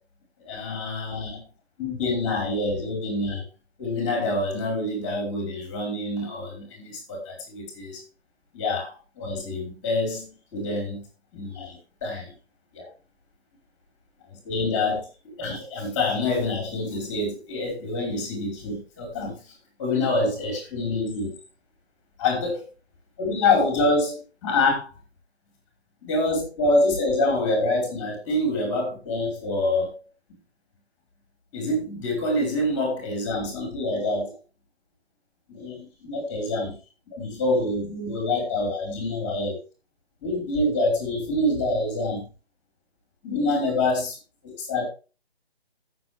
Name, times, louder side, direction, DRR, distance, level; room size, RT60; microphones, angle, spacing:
voice 1, 0.4-1.4 1.8-3.4 3.8-8.0 8.5-11.1 11.3-12.3 12.7-12.9 14.3-15.0 15.4-19.5 19.8-21.3 22.2-22.6 23.2-24.9 26.0-30.0 31.5-34.3 35.5-36.8 37.1-39.6 40.2-42.3 43.2-44.2 44.4-44.8, left 2 dB, 15° left, 1 dB, 5.0 m, -26 dB
17.0 x 7.6 x 3.6 m, 0.33 s
figure-of-eight pair, 165°, 32 cm